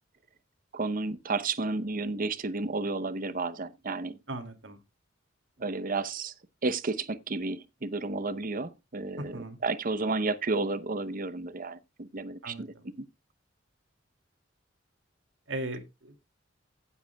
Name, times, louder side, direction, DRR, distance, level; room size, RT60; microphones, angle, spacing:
voice 1, 0.7-4.2 5.6-6.3 6.6-12.9, right 3 dB, 45° right, 0.8 m, -32 dB
voice 2, 4.3-4.8 9.2-9.6 12.4-12.8 15.5-16.1, right 1 dB, 70° right, 2.4 m, -38 dB
16.0 x 8.1 x 2.3 m
head